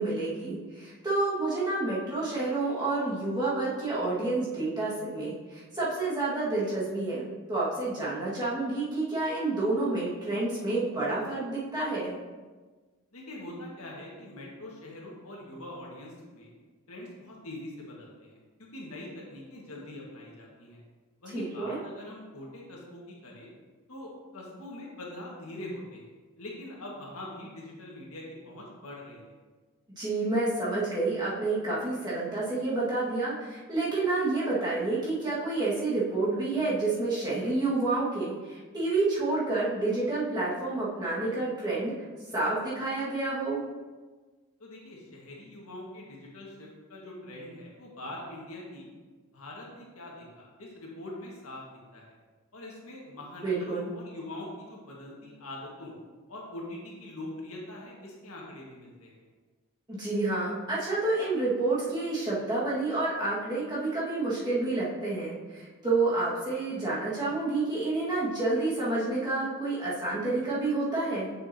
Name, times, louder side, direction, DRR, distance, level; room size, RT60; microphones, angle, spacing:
voice 1, 0.0-12.2 21.3-21.8 30.0-41.9 42.3-43.6 53.4-53.9 59.9-71.3, right 2 dB, 20° right, -9 dB, 1.7 m, -29 dB
voice 2, 13.1-16.5 16.9-20.8 21.2-23.5 23.9-26.1 26.4-29.3 44.6-48.9 49.3-51.6 51.9-52.2 52.5-55.9 56.3-59.2, left 1 dB, 80° left, -3 dB, 1.6 m, -43 dB
7.0 x 6.7 x 2.8 m, 1.4 s
head